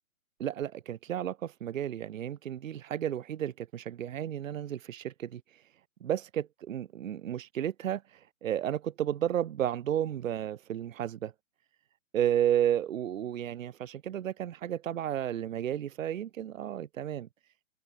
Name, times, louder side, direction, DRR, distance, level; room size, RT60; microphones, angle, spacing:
voice 1, 0.4-5.6 6.0-11.3 12.1-17.3, right 10 dB, 75° right, 0.5 m, -32 dB
figure-of-eight pair, 125°, 41 cm